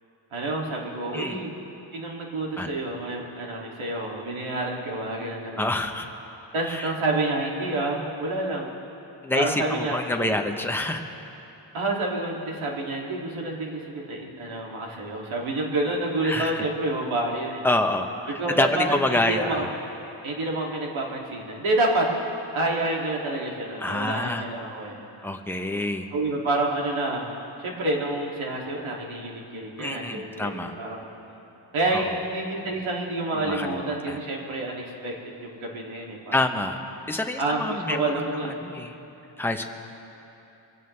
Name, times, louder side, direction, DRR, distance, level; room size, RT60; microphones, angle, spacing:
voice 1, 0.3-1.5 1.9-5.7 6.5-8.8 9.3-10.4 11.7-17.6 18.3-19.7 20.2-22.1 22.5-25.0 26.1-27.3 27.6-31.0 31.7-36.4 37.4-38.6, right 2 dB, 75° right, -2 dB, 2.5 m, -28 dB
voice 2, 5.6-6.1 6.7-6.9 9.2-11.0 16.2-16.6 17.6-19.7 23.8-24.5 25.2-26.1 29.8-30.7 31.9-32.2 33.4-34.2 36.3-36.8 37.1-39.0 39.4-39.6, left 2 dB, 5° left, 4 dB, 0.7 m, -27 dB
24.0 x 16.0 x 3.3 m, 3.0 s
wide cardioid pair, 170°, 49 cm